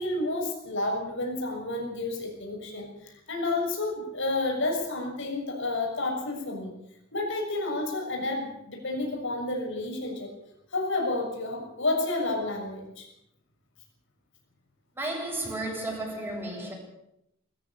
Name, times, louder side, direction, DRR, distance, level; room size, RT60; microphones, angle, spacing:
voice 1, 0.0-6.7 7.1-10.3 10.7-13.1, left 2 dB, 65° left, 6.8 m, -30 dB
voice 2, 15.0-16.7, right 1 dB, 10° right, 7.8 m, -33 dB
20.5 x 14.5 x 8.8 m
head